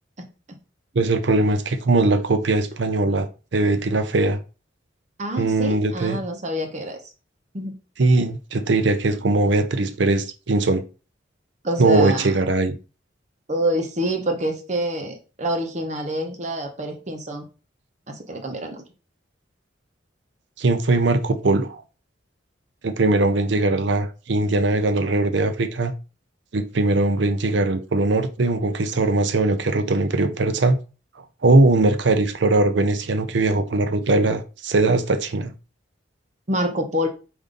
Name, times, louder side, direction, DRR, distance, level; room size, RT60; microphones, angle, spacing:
voice 1, 0.2-0.6 5.2-7.0 7.5-7.7 11.6-12.3 13.5-17.4 18.1-18.8 36.5-37.1, equal, 35° right, 0.8 m, -26 dB
voice 2, 1.0-4.4 5.4-6.2 8.0-10.8 11.8-12.7 20.6-21.8 22.8-25.9 26.5-30.8 31.4-35.5, right 2 dB, 70° right, 0.6 m, -20 dB
5.2 x 2.6 x 3.7 m
head